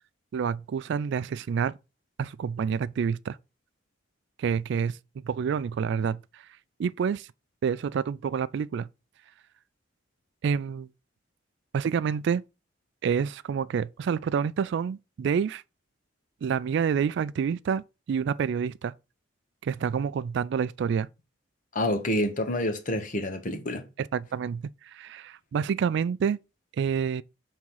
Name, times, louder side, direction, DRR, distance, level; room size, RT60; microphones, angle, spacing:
voice 1, 0.3-1.8 2.2-3.4 4.4-5.0 5.2-6.2 6.8-7.3 7.6-8.9 10.4-10.9 11.7-12.4 13.0-15.6 16.4-17.8 18.1-18.9 19.6-21.1 24.0-24.6 24.9-26.4 26.8-27.2, right 7 dB, 65° right, 0.3 m, -28 dB
voice 2, 21.7-23.8, left 1 dB, 45° left, 1.0 m, -28 dB
5.5 x 3.7 x 4.6 m
head